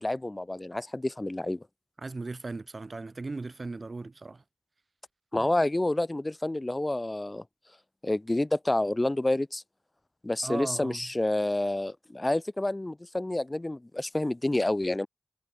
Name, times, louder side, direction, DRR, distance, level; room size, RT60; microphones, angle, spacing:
voice 1, 0.0-1.6 5.3-7.4 8.0-9.6 10.2-15.1, left 1 dB, 25° left, 0.6 m, -28 dB
voice 2, 2.0-4.4 10.4-11.0, right 3 dB, 55° right, 1.0 m, -37 dB
cardioid pair, 50°, 0 cm